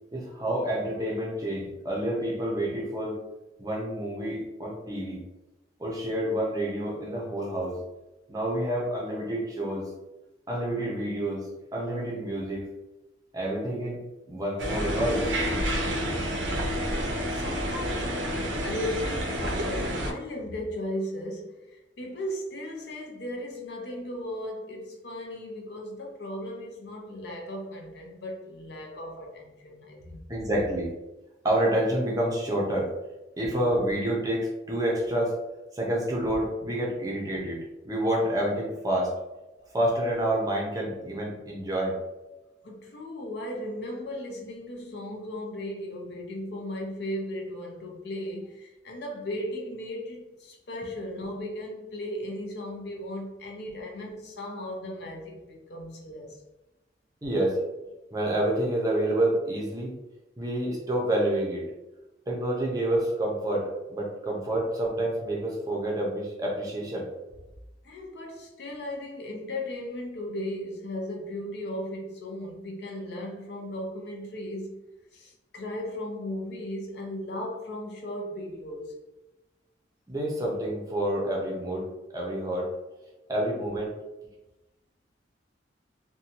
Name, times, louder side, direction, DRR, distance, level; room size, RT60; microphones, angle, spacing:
voice 1, 0.1-3.2 3.6-5.2 5.8-7.8 8.3-9.9 10.5-12.7 13.3-14.0 14.3-15.3 30.3-30.9 31.4-32.9 33.4-35.3 35.7-37.6 37.8-39.1 39.7-42.0 57.2-57.6 58.1-59.9 60.4-61.6 62.3-67.1 80.1-81.9 82.1-82.7 83.3-83.9, right 1 dB, 20° right, -3 dB, 0.5 m, -28 dB
sound 1, 14.6-20.1, equal, 80° right, 0.5 m, -29 dB
voice 2, 16.6-30.2 39.6-39.7 42.6-56.5 67.8-74.8 75.1-79.0, left 1 dB, 60° left, 0 dB, 0.5 m, -36 dB
2.6 x 2.2 x 2.8 m, 1.0 s
head